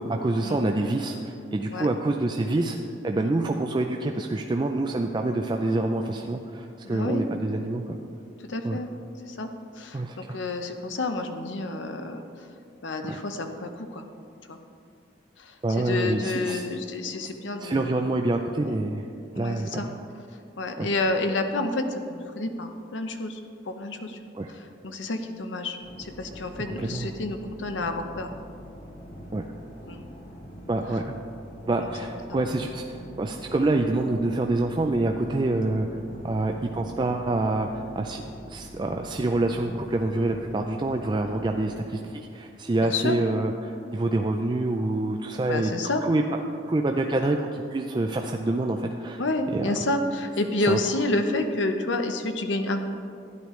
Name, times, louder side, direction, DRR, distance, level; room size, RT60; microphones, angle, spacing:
voice 1, 0.0-2.8 3.0-8.0 8.6-8.8 9.9-10.4 13.1-13.2 15.6-16.6 17.6-19.1 19.4-20.0 20.8-20.9 24.3-24.5 26.8-27.1 29.3-29.4 30.7-31.1 31.7-35.9 36.2-38.2 38.5-45.7 46.0-46.2 46.7-49.2 49.5-49.7 50.7-50.8, right 2 dB, 25° right, 3 dB, 0.3 m, -26 dB
voice 2, 6.8-7.3 8.4-8.9 9.3-12.5 12.8-14.0 14.5-14.6 15.4-18.1 18.6-18.8 19.3-19.9 20.6-24.2 24.5-28.3 29.9-30.0 30.9-31.0 31.8-31.9 32.3-32.7 42.8-43.2 45.5-46.0 49.2-52.9, left 2 dB, 85° left, 6 dB, 0.8 m, -30 dB
sound 1, 25.8-42.1, equal, 40° left, 1.5 m, -44 dB
12.5 x 9.8 x 3.1 m, 2.5 s
head